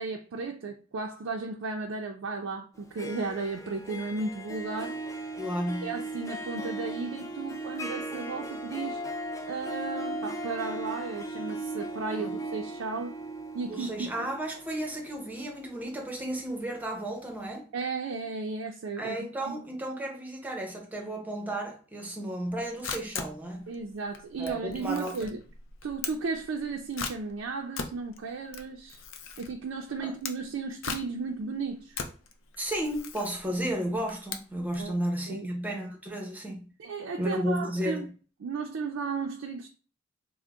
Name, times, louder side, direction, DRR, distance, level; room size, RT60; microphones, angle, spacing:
voice 1, 0.0-5.0 5.8-9.0 9.5-13.2 13.5-14.3 17.7-19.6 23.7-25.4 25.8-29.0 29.4-32.0 34.8-35.0 35.3-35.5 36.8-38.1 38.4-39.7, right 4 dB, 90° right, 0.4 m, -34 dB
Harp, 2.8-16.7, right 1 dB, 15° left, 0.4 m, -37 dB
voice 2, 5.4-5.9 12.2-12.3 13.7-17.6 19.0-23.7 24.4-25.1 30.0-30.1 32.6-36.7 37.2-38.1, right 1 dB, 10° right, 0.7 m, -33 dB
Camera, 22.5-34.9, left 5 dB, 75° left, 0.5 m, -40 dB
3.7 x 2.1 x 3.5 m
head